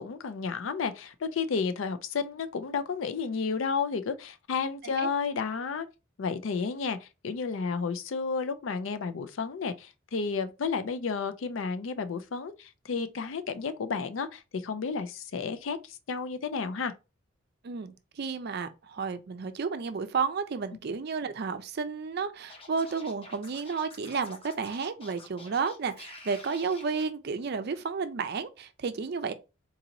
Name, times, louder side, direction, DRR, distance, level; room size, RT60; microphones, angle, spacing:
voice 1, 0.0-5.9 6.2-16.9, left 5 dB, 75° left, 0.5 m, -32 dB
voice 2, 17.6-29.3, right 5 dB, 55° right, 0.4 m, -32 dB
Scratching (performance technique), 22.5-27.0, left 2 dB, 30° left, 0.8 m, -49 dB
3.9 x 2.9 x 2.6 m
head